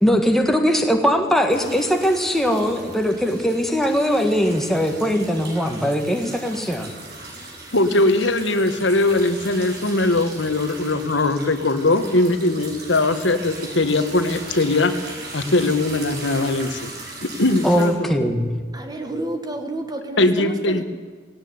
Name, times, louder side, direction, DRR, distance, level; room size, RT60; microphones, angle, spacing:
voice 1, 0.0-7.0 17.6-18.5, equal, ahead, 3 dB, 1.8 m, -20 dB
sound 1, 1.5-17.9, right 2 dB, 55° right, 5.9 m, -38 dB
voice 2, 7.7-14.9 15.3-16.9 17.2-17.9 20.2-20.8, left 2 dB, 75° left, 9 dB, 1.4 m, -20 dB
voice 3, 18.7-20.8, right 1 dB, 20° right, 6 dB, 1.9 m, -30 dB
17.0 x 16.5 x 9.5 m, 1.5 s
head